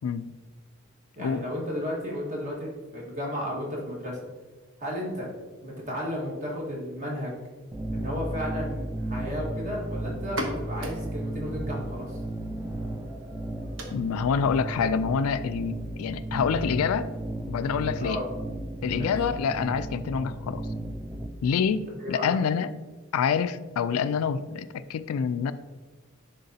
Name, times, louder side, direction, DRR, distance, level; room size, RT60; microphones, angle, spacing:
voice 1, 1.2-4.2 4.8-5.3 5.6-7.3 7.9-12.2 18.0-18.3 18.9-19.1 22.0-22.4, equal, 35° right, -3 dB, 1.6 m, -33 dB
sound 1, 7.7-21.3, right 1 dB, 10° right, 0.3 m, -34 dB
sound 2, 10.2-17.6, right 1 dB, 60° right, 0.9 m, -42 dB
voice 2, 13.9-17.1 17.5-18.2 18.8-20.7 21.4-22.7 23.1-25.5, left 6 dB, 80° left, 13 dB, 0.3 m, -27 dB
10.5 x 3.8 x 2.8 m, 1.2 s
head